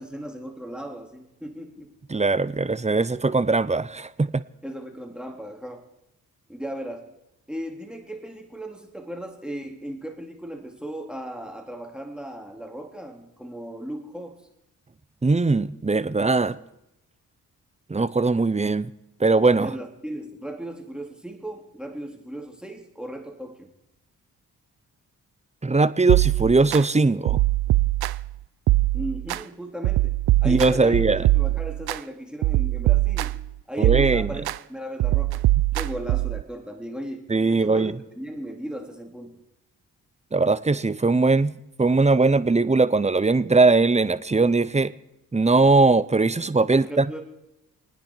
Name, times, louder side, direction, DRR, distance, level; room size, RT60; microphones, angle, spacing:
voice 1, 0.0-1.9 4.6-5.9 6.5-7.1 7.5-14.4 19.5-23.7 28.9-30.2 30.4-31.0 31.3-34.4 34.7-35.4 35.7-39.4 46.7-47.2, right 1 dB, ahead, 4 dB, 2.6 m, -36 dB
voice 2, 2.1-4.3 15.2-16.6 17.9-18.9 19.2-19.7 25.6-27.4 30.4-31.2 33.8-34.3 37.3-38.0 40.3-44.9 45.3-47.1, right 3 dB, 20° right, 15 dB, 0.8 m, -20 dB
sound 1, 26.1-26.8 27.3-28.3 28.7-29.4 29.8-32.0 32.4-33.5 33.8-34.6 35.0-36.4, right 17 dB, 80° right, 0.6 m, -22 dB
28.0 x 9.8 x 4.5 m, 0.89 s
cardioid pair, 60°, 37 cm